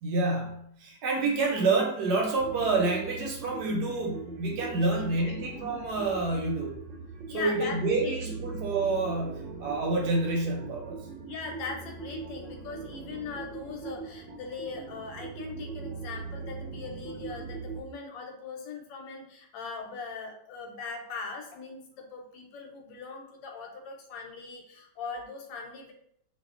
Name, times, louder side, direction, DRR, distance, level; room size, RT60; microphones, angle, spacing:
voice 1, 0.0-6.8 7.3-11.0, right 3 dB, 70° right, 0 dB, 1.1 m, -28 dB
sound 1, 2.4-17.8, right 5 dB, 90° right, 1.3 m, -40 dB
voice 2, 5.2-5.6 7.3-8.5 11.3-25.9, left 4 dB, 90° left, 2 dB, 1.3 m, -40 dB
2.7 x 2.6 x 2.4 m, 0.69 s
omnidirectional pair, 1.9 m